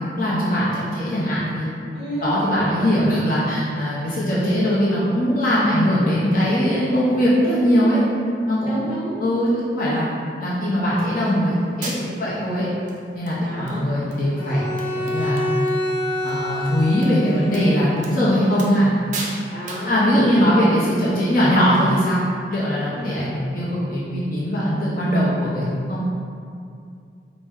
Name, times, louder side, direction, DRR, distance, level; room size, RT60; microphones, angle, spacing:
voice 1, 0.2-1.7 2.2-8.0 8.5-8.8 9.2-10.1 10.4-12.7 13.1-14.6 15.0-15.4 16.2-18.9 19.9-22.2 22.5-25.6 25.9-26.0, equal, 50° left, -8 dB, 0.6 m, -20 dB
voice 2, 1.9-2.3 8.7-9.2 13.4-13.9 19.5-20.0 22.9-23.1, equal, 5° right, -12 dB, 1.3 m, -31 dB
sound 1, 11.3-11.4 11.8-12.3 12.9-13.0 13.3-13.8 14.1-14.2 14.5-14.6 14.8-15.8 16.1-16.3 17.0-17.1 17.5-17.6 18.0-18.2 18.6-18.9 19.1-19.4 19.7-19.9, right 3 dB, 40° right, 0.4 m, -34 dB
Bowed string instrument, 14.4-17.9, left 1 dB, 10° left, 0.8 m, -27 dB
4.2 x 2.1 x 3.5 m, 2.4 s
head